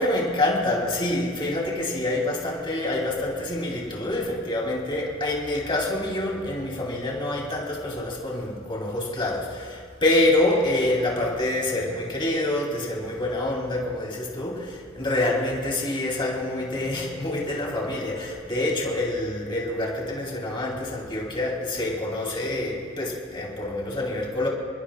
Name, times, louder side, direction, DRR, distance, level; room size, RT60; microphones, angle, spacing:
voice 1, 0.0-24.5, left 1 dB, 25° left, -2 dB, 3.0 m, -26 dB
28.5 x 21.0 x 2.4 m, 2.2 s
head